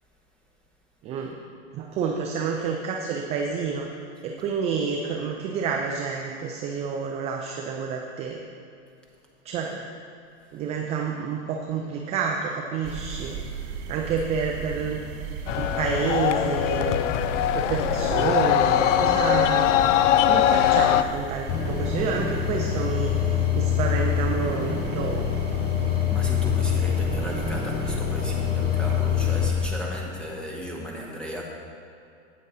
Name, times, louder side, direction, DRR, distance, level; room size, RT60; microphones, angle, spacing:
voice 1, 1.0-1.4 1.7-3.9 4.2-8.4 9.5-9.8 10.5-13.4 13.9-15.0 15.6-17.0 17.5-19.7 20.3-25.3, right 6 dB, 20° right, 1 dB, 0.3 m, -29 dB
sound 1, 12.8-29.7, right 5 dB, 55° right, 1.0 m, -36 dB
sound 2, 15.5-21.0, left 11 dB, 70° left, 0.5 m, -21 dB
sound 3, 21.5-29.5, left 9 dB, 25° left, 0.8 m, -25 dB
voice 2, 25.9-31.4, equal, ahead, -2 dB, 1.3 m, -36 dB
9.2 x 8.7 x 4.1 m, 2.5 s
supercardioid pair, 130°, 38 cm